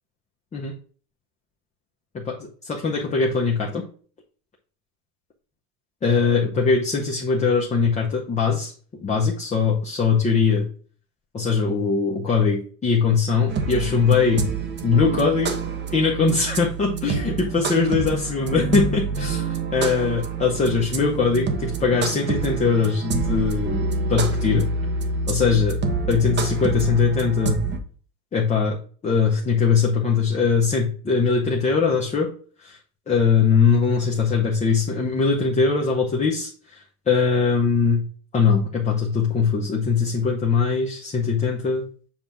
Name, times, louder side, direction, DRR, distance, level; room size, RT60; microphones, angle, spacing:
voice 1, 2.1-3.8 6.0-8.7 9.0-10.7 11.3-14.5 14.8-15.6 15.9-23.8 24.1-24.7 25.3-25.7 26.1-27.6 28.3-32.3 32.6-32.8 33.1-38.1 38.3-41.9, left 5 dB, 15° left, -1 dB, 0.7 m, -21 dB
sound 1, 13.5-27.8, right 3 dB, 25° right, 0.7 m, -27 dB
7.2 x 2.4 x 5.6 m, 0.43 s
cardioid pair, 150°, 42 cm